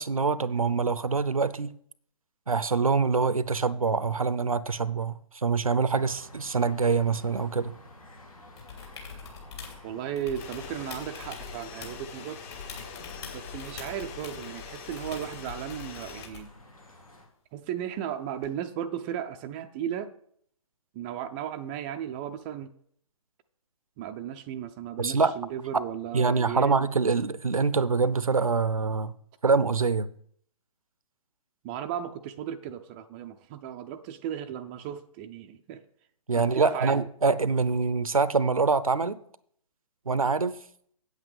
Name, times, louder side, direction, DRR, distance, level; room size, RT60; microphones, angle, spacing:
voice 1, 0.0-1.7 2.5-7.8 25.0-25.3 26.1-29.1 29.4-30.1 36.3-39.2 40.1-40.5, right 4 dB, 75° right, 0.6 m, -25 dB
sound 1, 5.9-17.3, left 1 dB, 80° left, 2.9 m, -51 dB
sound 2, 8.6-9.8 10.2-12.1 12.5-16.5 18.4-18.5, left 5 dB, 50° left, 3.1 m, -44 dB
voice 2, 9.8-12.4 13.3-16.5 17.5-20.1 20.9-22.7 24.0-26.9 31.6-35.8 36.4-37.1, right 10 dB, 15° right, 0.4 m, -35 dB
sound 3, 10.4-16.3, left 7 dB, 25° left, 0.8 m, -44 dB
8.6 x 8.3 x 5.1 m
figure-of-eight pair, 125°, 18 cm